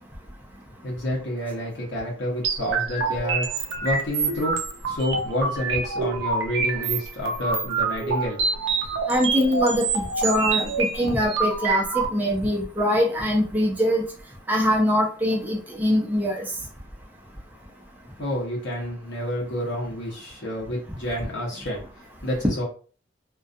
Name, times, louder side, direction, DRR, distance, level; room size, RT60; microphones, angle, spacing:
voice 1, 0.8-8.4 18.2-22.6, left 1 dB, 60° left, -5 dB, 0.8 m, -29 dB
sound 1, 2.4-12.1, right 4 dB, 65° right, 0.5 m, -26 dB
voice 2, 9.1-9.9 10.2-14.0 14.5-16.5, equal, 10° right, -3 dB, 0.5 m, -23 dB
2.3 x 2.2 x 2.5 m, 0.40 s
head